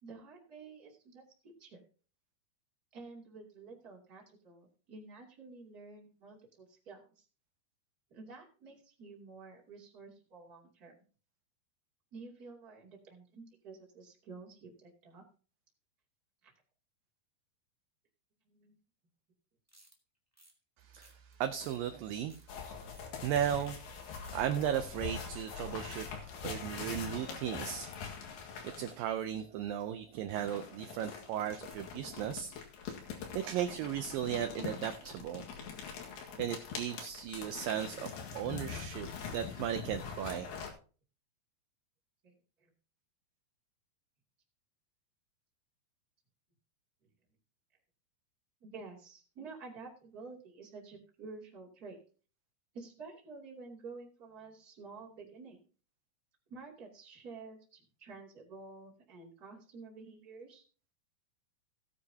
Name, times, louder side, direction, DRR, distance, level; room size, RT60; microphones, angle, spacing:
voice 1, 0.0-1.8 2.9-7.2 8.1-10.9 12.1-15.2 16.4-16.5 18.5-18.8 42.2-42.3 42.6-42.7 48.6-52.0 52.7-55.6 56.5-60.6, right 4 dB, 25° right, -2 dB, 2.7 m, -50 dB
sound 1, 19.7-20.0 20.3-20.5 21.0-21.3 21.6-21.8 22.1-22.5 22.9-23.1 23.6-23.7 24.0-24.4, right 1 dB, 10° right, 1.1 m, -61 dB
voice 2, 20.8-22.5 22.8-23.8 24.2-26.2 26.4-27.9 28.6-32.5 32.9-33.0 33.3-35.5 36.4-40.5, right 10 dB, 75° right, 8 dB, 2.2 m, -36 dB
sound 2, 22.5-29.1 30.3-40.7, left 6 dB, 85° left, 3.8 m, -43 dB
17.0 x 9.6 x 2.8 m, 0.39 s
omnidirectional pair, 4.4 m